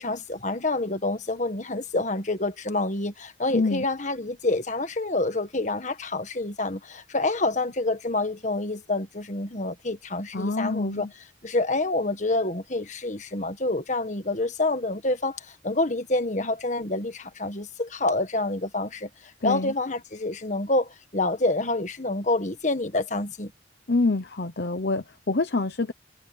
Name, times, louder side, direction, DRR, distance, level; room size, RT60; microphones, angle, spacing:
voice 1, 0.0-11.1 11.4-19.1 19.4-23.5, left 2 dB, 40° left, 1.6 m, -27 dB
voice 2, 3.5-3.8 10.3-11.1 19.4-19.7 23.9-25.9, left 3 dB, 60° left, 0.9 m, -26 dB
head